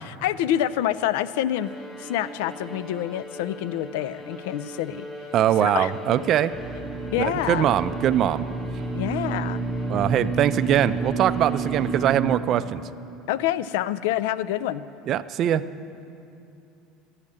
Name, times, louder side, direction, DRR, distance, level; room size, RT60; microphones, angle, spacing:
voice 1, 0.0-1.7 2.0-5.1 5.6-5.9 7.1-7.7 8.9-9.7 13.3-14.8, left 12 dB, 85° left, 17 dB, 0.3 m, -27 dB
Bowed string instrument, 1.5-12.5, left 1 dB, 15° left, 1.1 m, -40 dB
voice 2, 5.3-6.5 7.2-8.5 9.9-12.8 15.1-15.7, right 10 dB, 45° right, 14 dB, 0.4 m, -22 dB
sound 1, 6.5-12.4, right 4 dB, 15° right, 0.9 m, -30 dB
12.0 x 6.5 x 8.5 m, 2.7 s
supercardioid pair, 125°, 0 cm